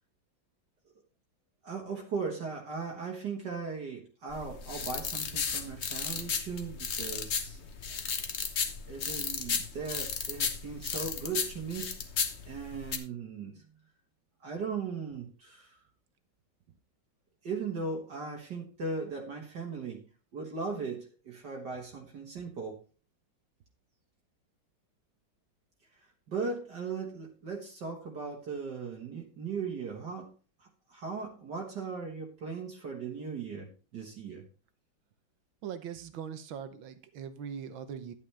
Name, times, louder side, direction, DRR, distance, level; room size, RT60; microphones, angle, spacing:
voice 1, 1.6-7.6 8.9-12.0 12.5-13.6 14.4-15.8 17.4-20.0 20.3-22.8 26.3-30.3 30.6-34.4, right 4 dB, 60° right, 0 dB, 2.0 m, -38 dB
sound 1, 4.3-13.0, left 6 dB, 45° left, 1.0 m, -34 dB
voice 2, 35.6-38.1, right 8 dB, 85° right, 10 dB, 1.8 m, -41 dB
11.0 x 8.8 x 3.3 m, 0.35 s
omnidirectional pair, 2.1 m